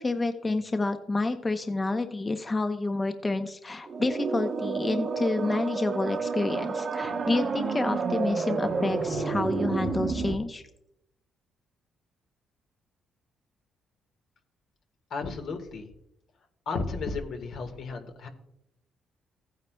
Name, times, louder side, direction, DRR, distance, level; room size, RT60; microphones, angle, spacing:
voice 1, 0.0-10.6, left 2 dB, 25° left, 7 dB, 0.7 m, -29 dB
sound 1, 3.9-10.3, right 4 dB, 50° right, 0.8 m, -30 dB
voice 2, 15.1-15.9 16.6-18.3, left 4 dB, 70° left, 5 dB, 1.5 m, -33 dB
15.5 x 9.4 x 2.3 m, 0.81 s
cardioid pair, 90°, 0 cm